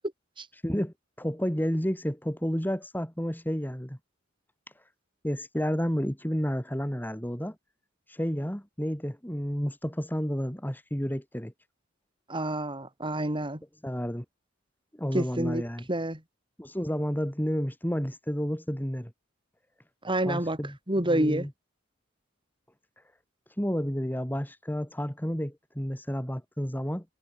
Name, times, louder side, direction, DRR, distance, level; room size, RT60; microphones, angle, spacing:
voice 1, 0.6-4.0 5.2-7.6 8.1-11.5 13.8-14.2 14.9-15.9 16.6-19.1 20.3-21.5 23.6-27.0, equal, 10° left, 4.3 m, -31 dB
voice 2, 12.3-13.6 15.1-15.6 15.9-16.2 20.0-20.6 20.9-21.5, right 1 dB, 25° right, 7.7 m, -28 dB
head